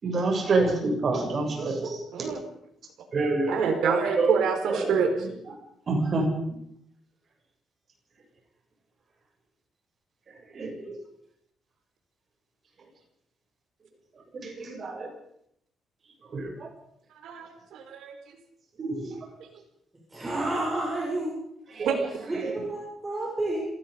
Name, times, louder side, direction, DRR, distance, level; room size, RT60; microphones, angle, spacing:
voice 1, 0.0-2.4 3.1-4.4 4.7-5.3 5.9-6.3 10.3-11.0 14.3-15.1 16.3-16.7 18.8-19.2 21.7-22.1 22.3-22.7, right 3 dB, 40° right, 2 dB, 7.6 m, -28 dB
voice 2, 3.5-5.1 17.2-18.1 21.8-22.2, right 6 dB, 80° right, 6 dB, 4.7 m, -27 dB
voice 3, 20.1-21.4 22.3-23.6, right 2 dB, 15° right, -4 dB, 7.7 m, -30 dB
26.5 x 19.0 x 5.4 m, 0.74 s
cardioid pair, 120°, 0 cm